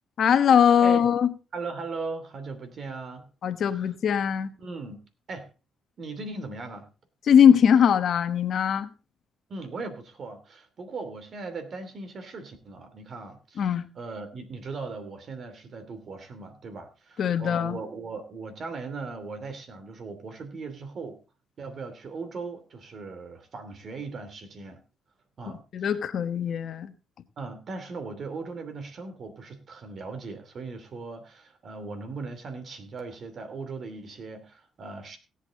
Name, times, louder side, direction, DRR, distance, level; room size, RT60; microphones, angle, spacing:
voice 1, 0.2-1.3 3.4-4.5 7.3-8.9 13.6-13.9 17.2-17.8 25.7-26.9, left 8 dB, 60° left, 1.1 m, -21 dB
voice 2, 1.5-3.3 3.7-3.8 4.6-5.0 5.3-5.5 6.0-6.9 9.5-21.2 21.6-24.8 25.4-25.9 27.4-35.2, right 4 dB, 55° right, 2.8 m, -38 dB
17.0 x 8.3 x 3.8 m
cardioid pair, 90°, 0 cm